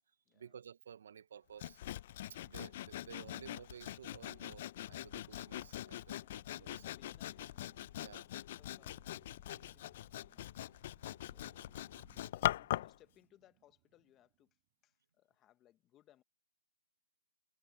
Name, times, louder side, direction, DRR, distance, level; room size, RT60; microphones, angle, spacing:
voice 1, 0.3-1.8 2.3-6.9 8.0-8.2, right 8 dB, 55° right, 0.7 m, -54 dB
Sawing, 1.6-13.0, left 13 dB, 35° left, 0.4 m, -42 dB
sound 1, 4.7-14.6, right 35 dB, 25° right, 5.1 m, -70 dB
voice 2, 6.1-7.7 8.0-9.0 9.3-14.6 14.8-16.2, left 13 dB, 15° left, 1.0 m, -69 dB
hypercardioid pair, 160°, 0 cm